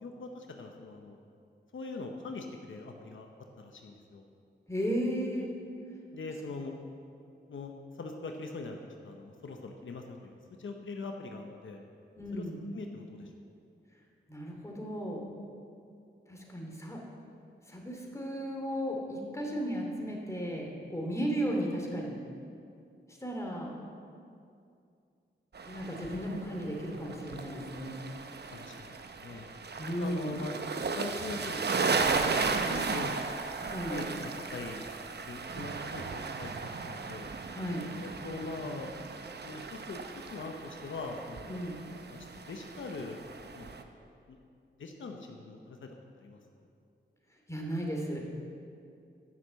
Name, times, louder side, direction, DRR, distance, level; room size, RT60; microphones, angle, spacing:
voice 1, 0.0-1.2 1.7-3.3 3.6-4.3 6.1-6.7 7.5-7.7 8.0-8.8 9.0-10.3 10.6-11.8 12.3-12.4 12.7-13.3 28.5-29.5 30.0-30.6 30.9-33.2 33.9-34.9 35.2-37.3 38.0-38.9 39.4-40.0 40.3-41.6 42.1-42.2 42.5-43.2 43.5-43.7 44.3-44.4 44.8-45.9 46.2-46.4, left 3 dB, 85° left, 3 dB, 0.8 m, -42 dB
voice 2, 4.7-5.5 12.1-12.6 14.3-15.3 16.3-17.0 17.7-22.2 23.2-23.7 25.6-28.0 29.8-30.3 33.7-34.1 37.5-37.9 41.5-41.8 47.5-48.2, equal, 15° left, -1 dB, 2.6 m, -35 dB
sound 1, 25.5-43.8, right 4 dB, 60° right, 0.8 m, -36 dB
11.0 x 6.3 x 7.4 m, 2.5 s
cardioid pair, 65°, 20 cm